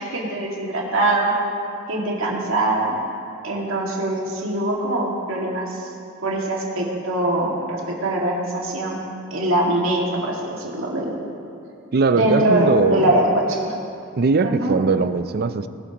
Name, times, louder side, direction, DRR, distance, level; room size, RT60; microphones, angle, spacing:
voice 1, 0.0-1.3 1.9-2.9 3.4-5.9 6.2-9.0 9.3-11.1 12.1-13.8 14.4-14.8, right 1 dB, 70° right, -3 dB, 2.2 m, -22 dB
voice 2, 11.9-13.2 14.2-15.7, right 4 dB, 50° right, 12 dB, 0.5 m, -20 dB
20.0 x 12.0 x 3.0 m, 2.5 s
head